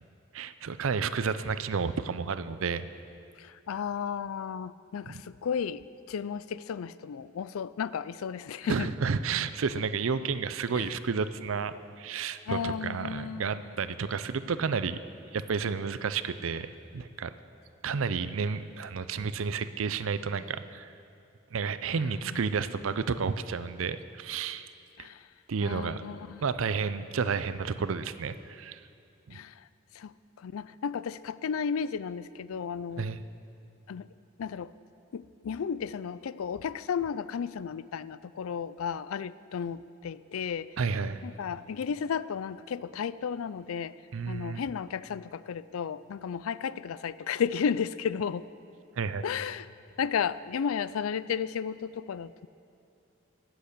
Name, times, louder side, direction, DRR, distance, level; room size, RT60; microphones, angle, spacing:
voice 1, 0.3-2.9 5.1-5.2 8.6-15.0 15.3-17.3 17.8-20.9 21.5-24.7 25.0-25.1 25.5-26.0 26.4-28.8 29.3-29.4 33.0-33.2 40.8-41.2 44.1-44.6 49.0-49.2, right 5 dB, 75° right, 13 dB, 0.5 m, -31 dB
voice 2, 3.4-8.9 10.7-10.9 12.5-13.6 21.9-22.4 25.0-25.3 25.6-26.5 29.3-29.6 29.9-33.1 33.9-34.1 34.4-34.7 35.1-40.7 41.2-43.9 44.3-48.5 49.2-49.7 50.0-52.5, left 7 dB, 90° left, 17 dB, 0.4 m, -33 dB
16.5 x 7.9 x 6.7 m, 2.5 s
head